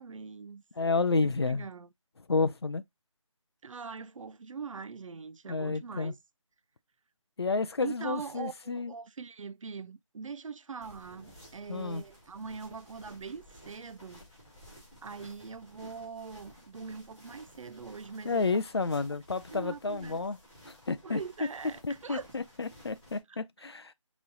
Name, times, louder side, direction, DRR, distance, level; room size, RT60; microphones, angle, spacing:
voice 1, 0.0-0.6 1.2-1.9 3.6-6.2 7.8-14.2 15.0-18.7 19.5-20.2 21.0-22.3 23.3-23.4, right 5 dB, 70° right, 0.4 m, -42 dB
voice 2, 0.8-1.6 2.3-2.8 5.5-6.1 7.4-8.9 11.7-12.0 18.2-20.4 20.7-21.2 21.8-23.9, left 4 dB, 50° left, 0.4 m, -30 dB
sound 1, 10.8-23.2, equal, 5° left, 1.6 m, -55 dB
5.3 x 3.0 x 2.5 m
figure-of-eight pair, 175°, 17 cm